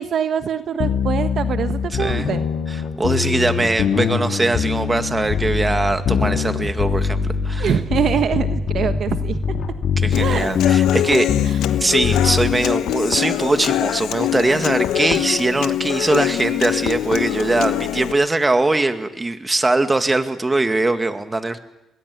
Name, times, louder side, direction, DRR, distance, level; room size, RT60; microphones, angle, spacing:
voice 1, 0.0-2.5 7.6-9.6 10.2-10.5 11.5-11.6, right 8 dB, 60° right, 9 dB, 1.3 m, -24 dB
sound 1, 0.8-12.6, left 6 dB, 65° left, 3.5 m, -22 dB
voice 2, 2.0-2.3 2.7-7.7 10.0-11.3 11.8-21.6, right 2 dB, 20° right, 8 dB, 2.2 m, -21 dB
Human voice / Acoustic guitar, 10.1-18.1, left 12 dB, 85° left, 1.1 m, -23 dB
26.5 x 20.5 x 8.6 m, 0.89 s
cardioid pair, 90°, 0 cm